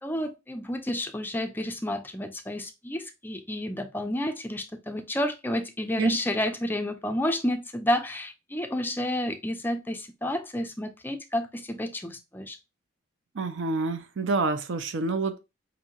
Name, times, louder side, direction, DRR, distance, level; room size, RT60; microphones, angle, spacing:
voice 1, 0.0-12.6, left 1 dB, 10° left, 0.4 m, -30 dB
voice 2, 13.3-15.4, right 3 dB, 70° right, 0.5 m, -28 dB
5.0 x 2.8 x 2.3 m
head